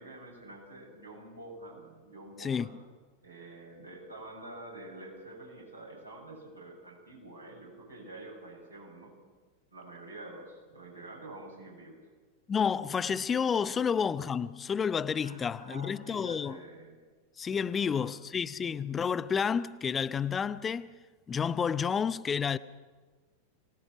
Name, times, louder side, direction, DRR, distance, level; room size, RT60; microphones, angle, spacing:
voice 1, 0.0-2.8 3.2-9.1 9.7-12.0 13.7-13.9 15.2-17.0 17.7-18.2, right 2 dB, 85° right, 7.1 m, -47 dB
voice 2, 2.4-2.7 12.5-16.6 17.4-20.9 21.3-22.6, left 6 dB, 20° left, 0.6 m, -30 dB
24.5 x 19.5 x 6.1 m
figure-of-eight pair, 90°, 0 cm